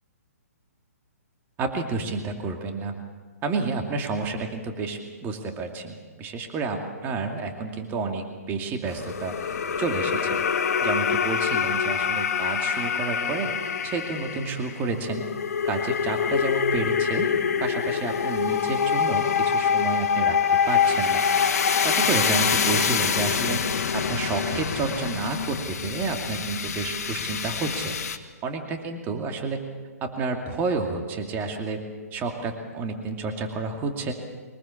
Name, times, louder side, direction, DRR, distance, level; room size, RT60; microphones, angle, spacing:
voice 1, 1.6-3.0 3.4-10.4 10.8-13.5 13.8-15.3 15.6-17.3 17.6-20.4 20.7-21.5 21.8-23.6 23.9-28.0 28.4-29.6 30.0-31.8 32.1-34.1, right 4 dB, 20° right, 3 dB, 2.6 m, -30 dB
sound 1, 8.9-28.2, left 7 dB, 70° left, 1.9 m, -25 dB
23.5 x 20.5 x 7.3 m, 1.4 s
hypercardioid pair, 140°, 9 cm